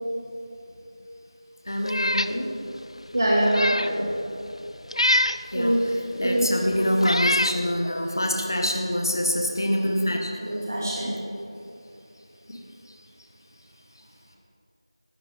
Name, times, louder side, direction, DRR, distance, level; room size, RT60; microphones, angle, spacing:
voice 1, 1.6-2.5 5.4-10.3 12.5-12.6, equal, 40° left, 1 dB, 1.3 m, -26 dB
Meow, 1.8-2.4 2.8-2.9 3.4-3.9 4.9-5.4 6.3-6.4 7.0-7.6, left 1 dB, 80° left, 0.5 m, -24 dB
voice 2, 3.1-4.1 5.5-5.8 6.2-6.5 10.4-11.1, right 1 dB, 40° right, -6 dB, 2.0 m, -23 dB
17.5 x 12.0 x 3.6 m, 2.8 s
figure-of-eight pair, 180°, 3 cm